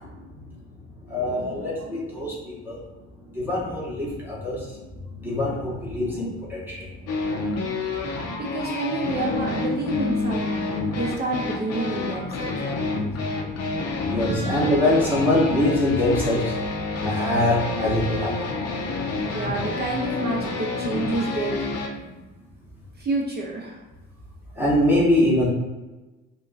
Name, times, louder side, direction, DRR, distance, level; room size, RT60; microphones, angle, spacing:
voice 1, 1.1-2.8 3.3-4.6 5.2-6.8 14.1-16.5 17.0-18.6 24.6-25.5, left 1 dB, 5° right, -8 dB, 0.9 m, -23 dB
sound 1, 7.1-21.9, left 3 dB, 40° left, 0.6 m, -29 dB
voice 2, 8.4-13.1 19.3-21.7 23.0-23.8, right 2 dB, 25° right, -2 dB, 0.5 m, -29 dB
2.7 x 2.4 x 2.4 m, 1.1 s
hypercardioid pair, 55°, 38 cm